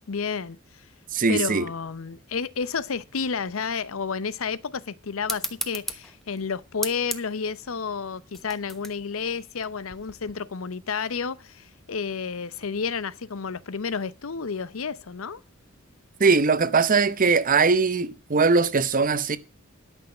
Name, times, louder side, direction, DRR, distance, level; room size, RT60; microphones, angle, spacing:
voice 1, 0.1-0.6 1.3-15.4, left 5 dB, 80° left, 0.7 m, -31 dB
voice 2, 1.1-1.7 16.2-19.4, right 4 dB, 40° right, 0.8 m, -21 dB
sound 1, 5.2-10.3, equal, ahead, 1.0 m, -37 dB
12.0 x 6.3 x 7.1 m
head